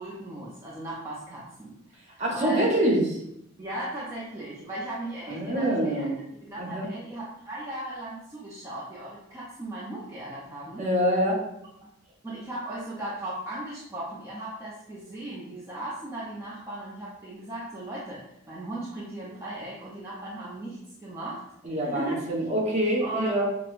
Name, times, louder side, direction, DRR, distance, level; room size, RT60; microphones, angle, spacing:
voice 1, 0.0-2.7 3.6-6.1 6.4-10.9 12.2-21.4 21.9-22.2 23.0-23.4, right 1 dB, 15° right, -7 dB, 0.6 m, -37 dB
voice 2, 2.2-3.0 5.3-6.1 6.6-6.9 10.8-11.4 21.6-23.4, right 1 dB, 35° right, -4 dB, 1.1 m, -25 dB
6.0 x 2.2 x 2.5 m, 0.77 s
head